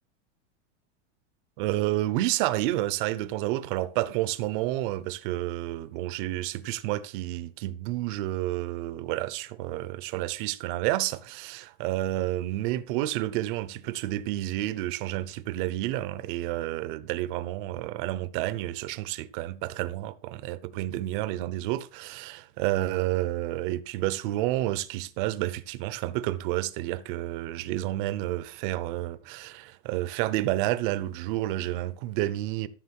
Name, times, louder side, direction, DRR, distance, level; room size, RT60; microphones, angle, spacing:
voice 1, 1.6-32.7, right 15 dB, 45° right, 0.9 m, -30 dB
14.0 x 6.3 x 4.7 m
supercardioid pair, 160°, 37 cm